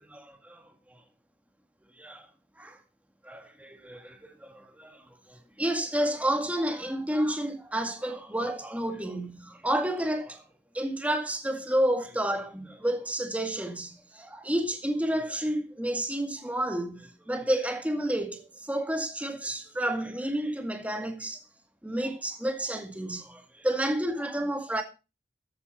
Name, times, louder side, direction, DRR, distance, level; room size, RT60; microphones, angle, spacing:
voice 1, 0.1-1.0 2.0-2.3 2.6-2.8 3.2-5.0 5.3-10.4 10.7-21.4 21.8-24.8, right 1 dB, 10° right, 2.0 m, -30 dB
14.0 x 9.6 x 4.2 m
head